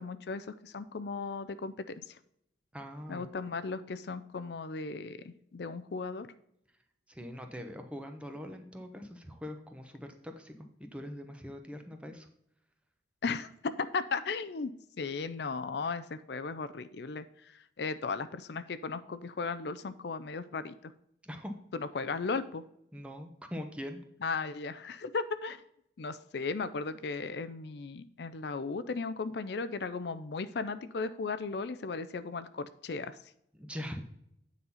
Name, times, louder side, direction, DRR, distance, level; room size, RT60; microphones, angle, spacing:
voice 1, 0.0-2.2 3.1-6.3 13.2-14.7 15.0-20.9 21.7-22.6 24.2-25.6 26.0-33.2, left 4 dB, 60° left, 12 dB, 0.4 m, -36 dB
voice 2, 2.7-3.3 7.1-10.5 10.8-12.3 21.2-21.5 22.9-24.0 33.5-34.0, equal, 5° right, 5 dB, 0.9 m, -42 dB
9.4 x 4.1 x 5.6 m, 0.75 s
head